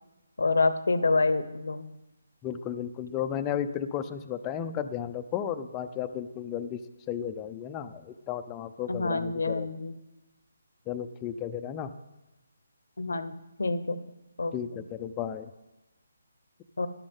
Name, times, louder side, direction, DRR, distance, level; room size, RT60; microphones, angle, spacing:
voice 1, 0.4-1.9 8.9-9.9 13.0-14.0 14.4-14.5 16.8-16.9, left 3 dB, 85° left, 13 dB, 0.8 m, -27 dB
voice 2, 2.4-6.8 7.1-9.7 10.9-11.9 14.5-15.5, left 9 dB, 15° left, 9 dB, 0.5 m, -34 dB
13.0 x 11.0 x 3.6 m, 1.0 s
hypercardioid pair, 160°, 0 cm